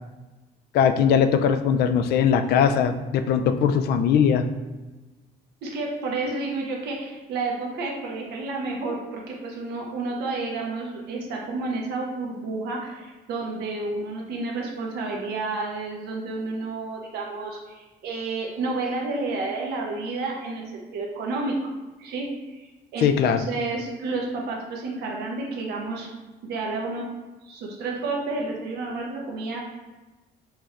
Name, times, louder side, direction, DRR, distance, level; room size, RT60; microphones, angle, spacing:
voice 1, 0.7-4.4 23.0-23.4, left 7 dB, 70° left, 8 dB, 0.4 m, -20 dB
voice 2, 5.6-21.7 22.0-26.1 26.4-27.0 27.4-29.6, right 3 dB, 75° right, -1 dB, 1.1 m, -30 dB
6.1 x 3.2 x 2.5 m, 1.2 s
cardioid pair, 110°, 17 cm